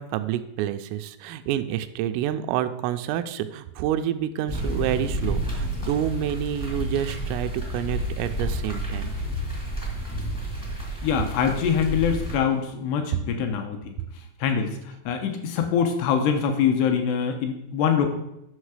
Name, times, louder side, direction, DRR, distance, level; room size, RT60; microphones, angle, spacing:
voice 1, 0.0-9.1, right 11 dB, 85° right, 10 dB, 3.1 m, -28 dB
sound 1, 4.5-12.4, equal, 20° left, 0.5 m, -30 dB
voice 2, 11.0-13.8 14.4-18.1, left 7 dB, 80° left, 5 dB, 2.4 m, -24 dB
11.0 x 6.5 x 4.8 m, 0.85 s
omnidirectional pair, 5.9 m